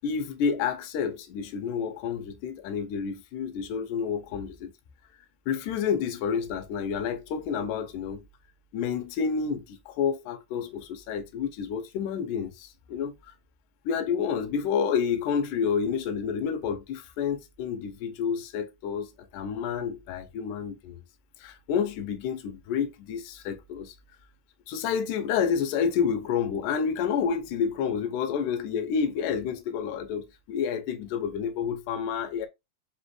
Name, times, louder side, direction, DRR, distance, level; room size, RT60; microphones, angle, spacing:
voice 1, 0.0-4.7 5.5-8.2 8.7-13.1 13.9-21.0 21.4-24.0 24.7-32.5, left 7 dB, 80° left, 2.1 m, -29 dB
5.2 x 2.8 x 3.0 m
omnidirectional pair, 3.8 m